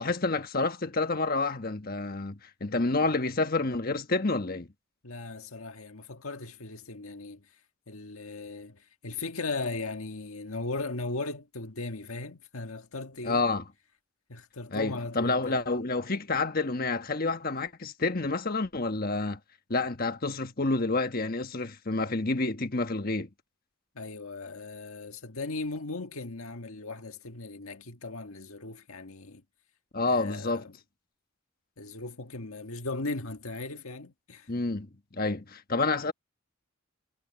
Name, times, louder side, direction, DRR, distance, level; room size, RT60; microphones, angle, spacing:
voice 1, 0.0-4.7 13.2-13.6 14.7-19.4 19.7-23.3 29.9-30.7 34.5-34.9 35.1-36.1, left 3 dB, 45° left, 1.3 m, -29 dB
voice 2, 5.0-7.5 7.9-13.5 14.3-15.6 24.0-29.4 30.1-30.7 31.8-34.5, left 3 dB, 80° left, 1.7 m, -37 dB
head